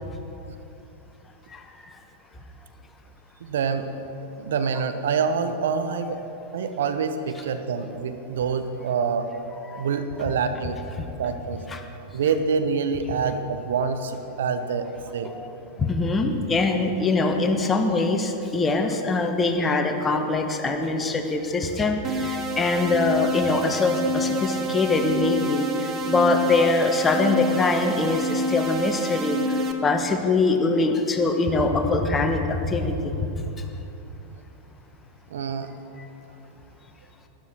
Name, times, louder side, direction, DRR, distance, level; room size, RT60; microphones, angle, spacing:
voice 1, 3.4-3.9 4.4-6.2 6.5-9.3 9.8-10.8 11.2-11.6 12.1-15.3 35.3-35.7, right 5 dB, 60° right, 8 dB, 0.8 m, -26 dB
voice 2, 15.8-29.4 29.8-33.2, left 3 dB, 15° left, 4 dB, 1.3 m, -23 dB
sound 1, 22.0-29.7, equal, 25° right, 1.2 m, -28 dB
12.5 x 12.0 x 6.0 m, 2.9 s
figure-of-eight pair, 90°, 0 cm